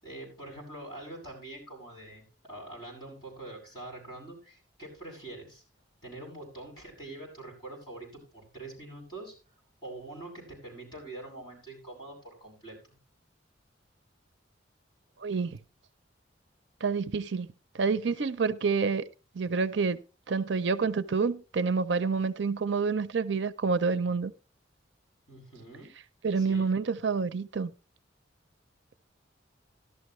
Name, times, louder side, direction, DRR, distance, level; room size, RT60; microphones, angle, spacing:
voice 1, 0.0-5.6 6.0-9.3 9.8-13.0 25.3-25.9 26.3-26.7, right 2 dB, 25° left, 7.7 m, -44 dB
voice 2, 16.8-17.5 17.7-19.0 19.3-20.0 20.3-24.3 26.2-27.7, right 4 dB, 65° right, 0.6 m, -28 dB
14.0 x 12.5 x 3.1 m
head